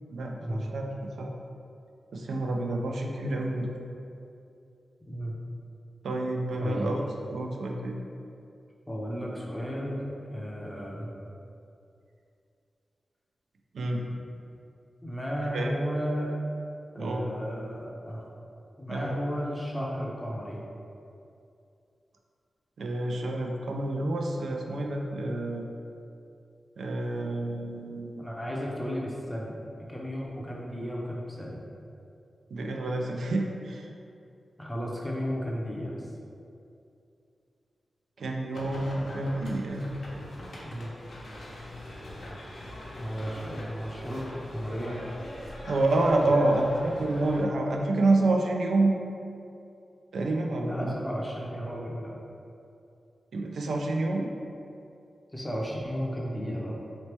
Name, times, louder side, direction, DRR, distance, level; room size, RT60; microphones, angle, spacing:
voice 1, 0.1-1.3 2.1-3.7 6.0-7.1 7.3-8.0 13.7-14.0 15.5-15.7 17.0-17.2 18.9-19.1 22.8-25.6 26.8-28.3 32.5-33.9 38.2-39.9 45.6-49.0 50.1-51.0 53.3-54.3, right 2 dB, 90° right, 1 dB, 0.4 m, -28 dB
voice 2, 6.6-6.9 8.9-10.0 10.3-11.1 15.0-16.4 16.9-18.3 18.8-20.6 28.2-31.6 34.6-36.1 40.6-40.9 43.0-45.0 46.2-46.5 50.6-52.1 55.3-56.8, equal, 5° left, -3 dB, 0.5 m, -34 dB
sound 1, 38.5-47.4, left 1 dB, 65° left, 0.7 m, -42 dB
4.1 x 2.9 x 3.3 m, 2.6 s
wide cardioid pair, 170°, 0 cm